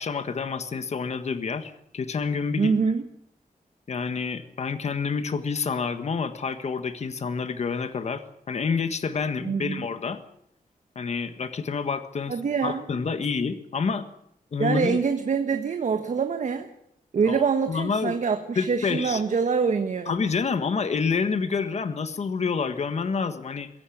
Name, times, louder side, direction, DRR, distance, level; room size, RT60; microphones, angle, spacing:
voice 1, 0.0-2.7 3.9-10.2 10.9-12.3 12.6-14.0 14.5-15.0 17.2-18.1 18.5-19.2 20.1-23.7, left 5 dB, 50° left, 10 dB, 1.6 m, -28 dB
voice 2, 2.6-3.0 9.4-9.8 12.3-12.8 14.6-16.7 17.1-20.1, right 5 dB, 55° right, 7 dB, 1.4 m, -25 dB
22.5 x 17.0 x 8.6 m, 0.72 s
wide cardioid pair, 165°, 14 cm